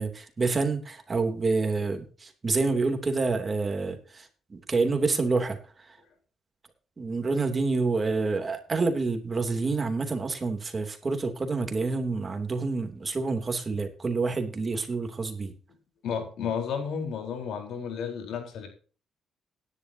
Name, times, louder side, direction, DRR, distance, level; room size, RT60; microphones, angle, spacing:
voice 1, 0.0-6.0 7.0-15.5, right 3 dB, 30° right, 5 dB, 3.0 m, -28 dB
voice 2, 16.0-18.7, left 7 dB, 75° left, 4 dB, 4.2 m, -32 dB
16.5 x 11.0 x 2.9 m, 0.38 s
cardioid pair, 90°, 0 cm